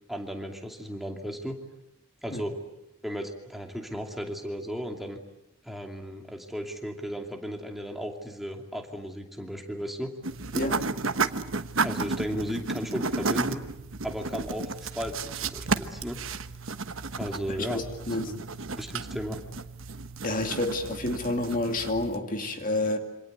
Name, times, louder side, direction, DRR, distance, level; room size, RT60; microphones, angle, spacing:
voice 1, 0.1-1.6 2.2-2.6 3.0-5.2 5.6-10.1 11.8-13.6 14.0-16.2 17.2-17.8 18.2-18.4 18.7-19.4, equal, ahead, 2 dB, 2.6 m, -35 dB
sound 1, 10.2-22.2, right 4 dB, 60° right, 1.2 m, -33 dB
voice 2, 10.5-10.9 17.5-18.3 20.2-23.0, left 2 dB, 40° left, 5 dB, 2.4 m, -29 dB
27.5 x 26.0 x 8.1 m, 0.86 s
head